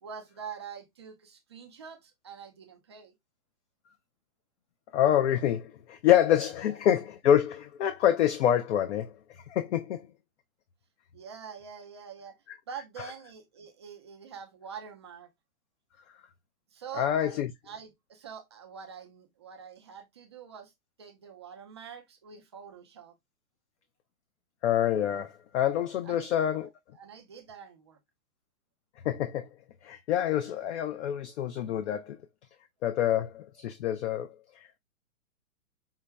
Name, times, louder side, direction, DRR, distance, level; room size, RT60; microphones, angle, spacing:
voice 1, 0.0-3.1 6.7-6.8 11.1-12.4 12.7-15.3 16.7-17.4 17.6-20.7 21.0-23.1 26.0-26.4 26.9-28.0, right 7 dB, 20° right, 0.4 m, -45 dB
voice 2, 4.9-9.1 9.5-10.0 17.0-17.5 24.6-26.7 29.0-29.5 29.8-32.2 32.8-34.8, left 10 dB, 50° left, 0.6 m, -26 dB
5.7 x 2.2 x 3.2 m
hypercardioid pair, 145°, 44 cm